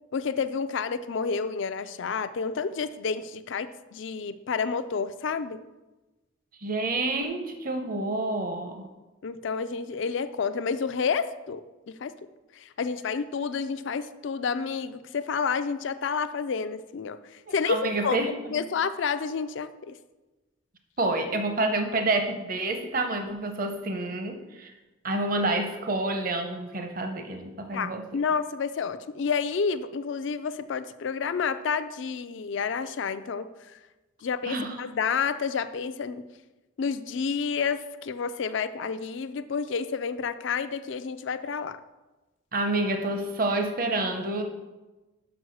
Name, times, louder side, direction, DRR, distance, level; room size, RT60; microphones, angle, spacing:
voice 1, 0.1-5.6 9.2-12.1 12.5-18.2 18.5-19.9 27.7-33.5 34.2-36.3 36.8-41.8, left 5 dB, 65° left, 11 dB, 0.4 m, -30 dB
voice 2, 6.6-8.9 17.5-18.6 21.0-24.7 25.0-28.0 34.4-34.8 42.5-44.4, right 2 dB, 45° right, 5 dB, 0.8 m, -28 dB
6.3 x 6.1 x 6.2 m, 1.1 s
head